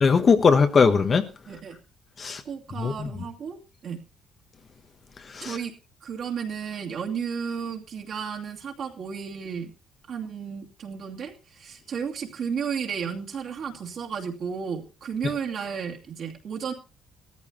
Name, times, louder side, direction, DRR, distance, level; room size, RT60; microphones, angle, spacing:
voice 1, 0.0-1.3 2.2-2.4 2.8-3.1 5.3-5.6, left 5 dB, 30° left, 1.0 m, -20 dB
voice 2, 1.5-1.8 2.4-4.0 5.4-5.7 6.0-9.7 10.1-16.7, right 6 dB, 45° right, 2.5 m, -33 dB
18.5 x 14.0 x 2.9 m
cardioid pair, 170°, 0 cm